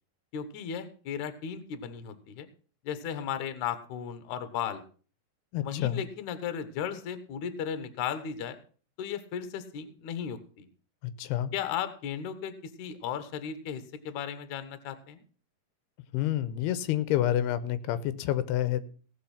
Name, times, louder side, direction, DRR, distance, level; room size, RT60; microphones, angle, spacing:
voice 1, 0.3-2.5 2.8-4.8 5.6-8.6 9.0-10.7 11.5-15.2, left 8 dB, 65° left, 11 dB, 2.1 m, -35 dB
voice 2, 5.5-6.0 11.2-11.5 16.1-18.9, left 12 dB, 85° left, 14 dB, 2.8 m, -28 dB
17.5 x 6.4 x 5.7 m, 0.40 s
omnidirectional pair, 4.6 m